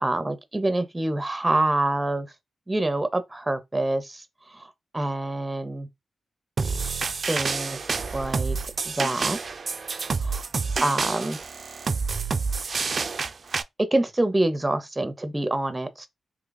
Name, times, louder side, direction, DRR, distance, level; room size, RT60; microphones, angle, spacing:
voice 1, 0.0-2.3 2.7-4.2 4.5-4.7 4.9-5.9 7.3-7.8 8.1-8.6 8.8-9.4 10.2-10.4 10.8-11.4 13.8-16.1, right 2 dB, 20° right, 0.7 m, -26 dB
sound 1, 6.6-13.6, right 4 dB, 60° right, 0.3 m, -28 dB
3.0 x 2.3 x 3.9 m
cardioid pair, 50°, 0 cm